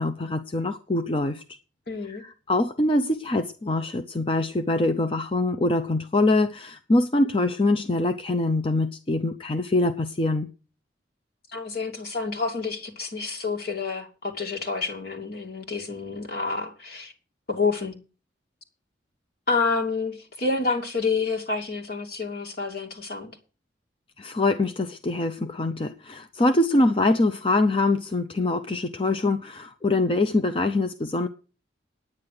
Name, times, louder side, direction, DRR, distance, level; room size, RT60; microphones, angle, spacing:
voice 1, 0.0-1.4 2.1-10.5 24.2-31.3, left 2 dB, 30° left, 0.7 m, -24 dB
voice 2, 1.9-2.2 11.5-17.1 17.5-17.9 19.5-23.3, left 4 dB, 60° left, 2.6 m, -28 dB
9.8 x 9.6 x 6.7 m
head